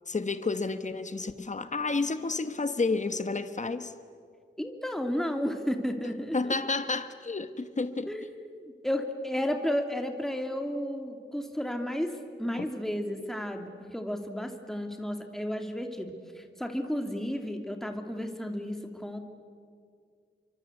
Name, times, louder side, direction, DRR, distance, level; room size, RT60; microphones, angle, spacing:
voice 1, 0.1-3.9 6.3-8.3 12.6-12.7, left 3 dB, 40° left, 10 dB, 1.2 m, -31 dB
voice 2, 4.6-6.5 8.1-8.4 8.8-12.1 12.4-19.2, equal, ahead, 5 dB, 2.4 m, -32 dB
28.5 x 24.5 x 8.3 m, 2.2 s
wide cardioid pair, 100°, 20 cm